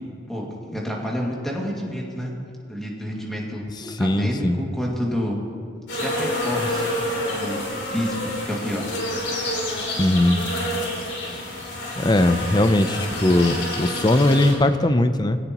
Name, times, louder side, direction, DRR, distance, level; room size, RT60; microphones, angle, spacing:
voice 1, 0.3-2.3 2.7-3.6 4.0-5.4 6.0-6.8 7.3-8.9, equal, ahead, -3 dB, 2.2 m, -29 dB
voice 2, 3.8-4.6 10.0-10.4 12.0-15.4, left 1 dB, 25° left, 10 dB, 0.6 m, -19 dB
sound 1, 5.9-14.5, left 1 dB, 80° left, 3.4 m, -28 dB
21.0 x 16.5 x 3.0 m, 2.4 s
head